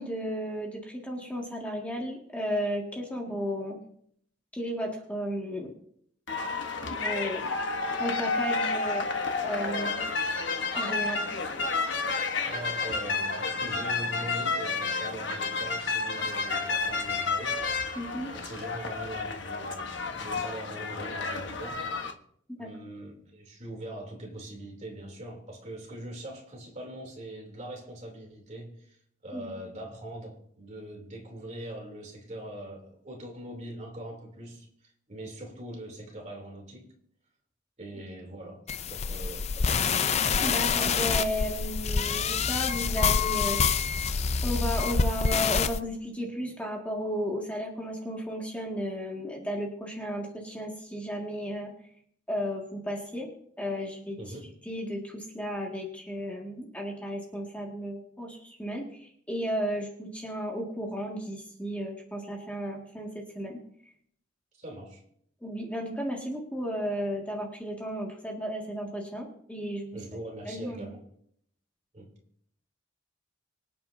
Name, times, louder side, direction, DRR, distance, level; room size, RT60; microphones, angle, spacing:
voice 1, 0.0-3.8 4.5-5.7 6.9-7.7 8.0-9.1 9.4-10.0 10.7-11.2 18.0-18.3 22.5-22.7 29.3-29.5 40.4-43.9 44.4-51.7 52.3-53.3 53.6-54.2 54.7-63.6 65.4-70.0 70.5-70.9, equal, 5° left, -2 dB, 1.9 m, -34 dB
sound 1, 6.3-22.1, left 4 dB, 60° left, 1.2 m, -31 dB
voice 2, 12.5-17.6 18.2-22.0 22.6-29.0 29.2-36.9 37.8-39.7 54.2-54.5 64.6-65.0 69.9-71.1 71.9-72.1, right 1 dB, 35° right, 1 dB, 3.1 m, -42 dB
sound 2, 38.7-45.8, left 6 dB, 35° left, 0.4 m, -26 dB
25.0 x 8.6 x 2.7 m, 0.66 s
head